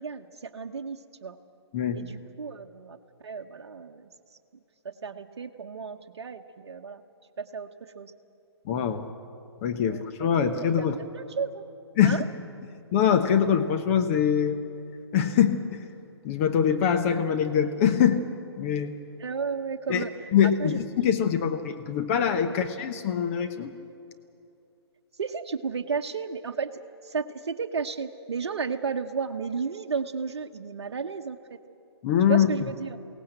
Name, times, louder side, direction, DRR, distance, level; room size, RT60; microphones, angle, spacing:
voice 1, 0.0-1.4 1.9-3.0 3.2-4.1 4.8-7.0 7.4-8.1 9.8-11.7 12.0-12.2 19.2-20.8 22.5-22.6 25.1-31.6 32.3-33.0, right 5 dB, 70° right, 3 dB, 0.9 m, -33 dB
voice 2, 8.7-9.1 9.6-10.9 12.0-12.2 12.9-14.6 15.1-15.8 16.2-18.2 18.6-18.9 19.9-20.0 20.3-23.7 32.0-32.5, left 8 dB, 30° left, 7 dB, 0.9 m, -23 dB
22.0 x 17.5 x 8.0 m, 2.7 s
hypercardioid pair, 140°, 14 cm